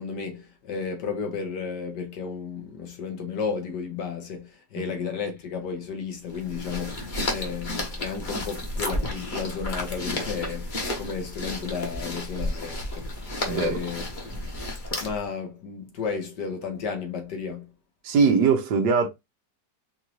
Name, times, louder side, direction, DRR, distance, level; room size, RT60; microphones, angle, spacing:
voice 1, 0.0-13.1 13.4-14.0 14.3-14.5 15.0-17.7, left 6 dB, 75° left, 1.7 m, -33 dB
sound 1, 6.3-15.3, left 1 dB, 35° left, 1.0 m, -32 dB
voice 2, 13.5-13.8 18.0-19.1, right 5 dB, 85° right, 1.4 m, -21 dB
4.6 x 2.5 x 2.9 m
omnidirectional pair, 1.8 m